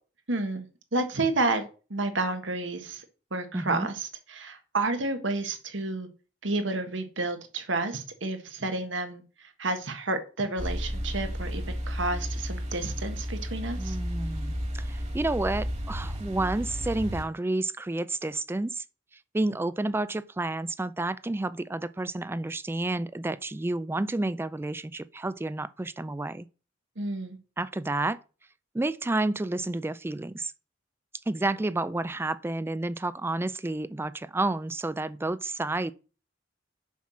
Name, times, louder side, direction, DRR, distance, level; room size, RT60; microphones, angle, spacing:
voice 1, 0.3-1.6 1.9-3.0 3.3-6.1 6.4-9.2 9.6-14.0 27.0-27.4, right 2 dB, 80° right, 1.6 m, -30 dB
voice 2, 3.5-3.9 13.8-18.8 19.3-26.5 27.6-28.2 28.7-30.5 31.3-35.9, right 2 dB, 10° right, 0.3 m, -30 dB
sound 1, 10.6-17.2, equal, 35° right, 2.0 m, -33 dB
7.1 x 5.8 x 6.2 m
head